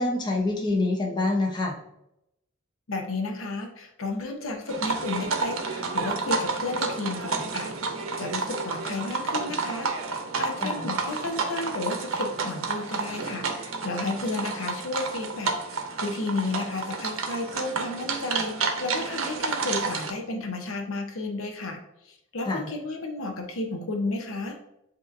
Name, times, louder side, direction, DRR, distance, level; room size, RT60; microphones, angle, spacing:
voice 1, 0.0-1.8 10.6-10.8 22.5-22.7, left 2 dB, 20° left, -1 dB, 0.7 m, -26 dB
voice 2, 2.9-24.6, left 2 dB, 75° left, 3 dB, 0.7 m, -33 dB
sound 1, 4.7-20.1, right 4 dB, 75° right, 0.7 m, -30 dB
7.4 x 2.8 x 2.6 m, 0.82 s
head